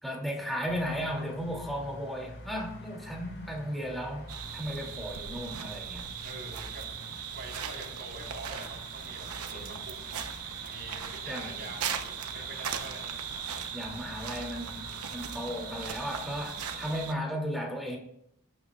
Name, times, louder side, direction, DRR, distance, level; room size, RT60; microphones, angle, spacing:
voice 1, 0.0-4.3 4.5-6.1 9.5-9.8 11.3-11.7 13.7-18.0, equal, ahead, -1 dB, 2.6 m, -35 dB
sound 1, 0.7-17.1, left 1 dB, 65° left, 3.9 m, -48 dB
sound 2, 4.3-17.1, right 8 dB, 85° right, 0.9 m, -38 dB
voice 2, 6.2-10.2 10.6-13.1, right 2 dB, 50° right, -2 dB, 4.1 m, -45 dB
21.5 x 9.6 x 2.4 m, 0.74 s
head